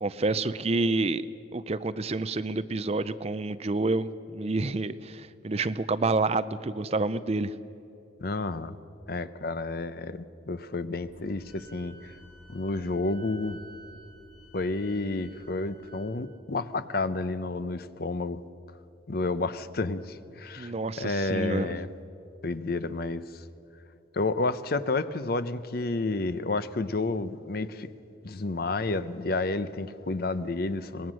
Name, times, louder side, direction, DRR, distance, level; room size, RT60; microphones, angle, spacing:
voice 1, 0.0-1.3 1.5-7.5 20.6-21.9, right 3 dB, 35° right, 14 dB, 0.5 m, -28 dB
voice 2, 8.2-8.8 9.1-12.1 12.5-13.6 14.5-18.4 19.1-21.9 22.4-23.4 24.1-27.9 28.2-31.1, left 3 dB, 55° left, 13 dB, 0.7 m, -30 dB
sound 1, 11.0-16.9, equal, 35° left, 4.0 m, -58 dB
Wind instrument woodwind instrument, 11.4-16.1, right 2 dB, 70° left, 6.0 m, -53 dB
23.5 x 19.5 x 6.3 m, 2.7 s
head